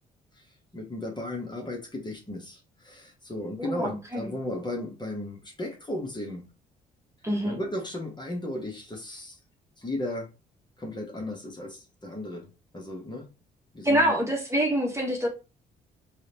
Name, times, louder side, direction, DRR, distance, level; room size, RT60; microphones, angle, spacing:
voice 1, 0.7-6.4 7.4-9.4 9.8-10.3 10.8-12.4 12.7-13.3 13.7-14.2, left 1 dB, 20° left, 0 dB, 1.4 m, -35 dB
voice 2, 3.6-4.3 7.2-7.6 13.8-15.3, equal, 15° right, 0 dB, 1.4 m, -26 dB
4.8 x 2.5 x 2.9 m, 0.30 s
hypercardioid pair, 45°, 20 cm